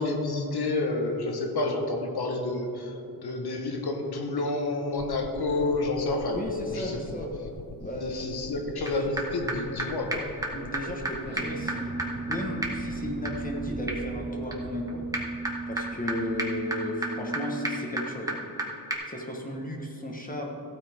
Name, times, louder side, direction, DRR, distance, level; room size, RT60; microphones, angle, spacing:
voice 1, 0.0-2.9 3.2-6.4 6.7-7.0 8.0-10.3, left 2 dB, 85° left, 3 dB, 1.4 m, -29 dB
sound 1, 5.0-11.4, left 2 dB, 55° left, 0.7 m, -44 dB
voice 2, 6.3-7.3 7.8-8.4 8.8-9.1 10.5-11.9 12.3-15.0 15.7-18.4 19.0-20.5, left 1 dB, 20° left, 0 dB, 1.4 m, -34 dB
sound 2, 8.9-9.0 9.2-9.3 9.5-9.6 9.8-9.9 10.1-10.2 10.4-10.5 10.7-10.8 11.0-11.1 11.4-18.6 18.9-19.0, right 2 dB, 10° right, 1.3 m, -33 dB
Explosion, 11.2-16.8, right 2 dB, 30° right, 0.6 m, -43 dB
15.0 x 8.6 x 3.6 m, 2.8 s
wide cardioid pair, 150°, 38 cm